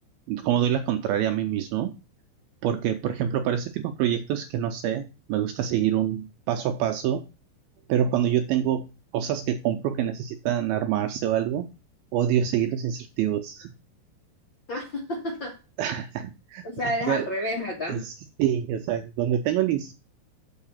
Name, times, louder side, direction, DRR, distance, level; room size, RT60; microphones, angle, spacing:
voice 1, 0.3-1.9 2.6-7.3 7.9-8.9 9.1-11.6 12.1-13.7 15.8-16.6 17.1-17.3 17.9-18.1 18.4-19.9, right 10 dB, 85° right, 6 dB, 2.2 m, -26 dB
voice 2, 14.7-15.6 16.6-18.0, left 1 dB, 45° left, -1 dB, 1.6 m, -30 dB
7.2 x 4.8 x 7.1 m, 0.30 s
omnidirectional pair, 4.9 m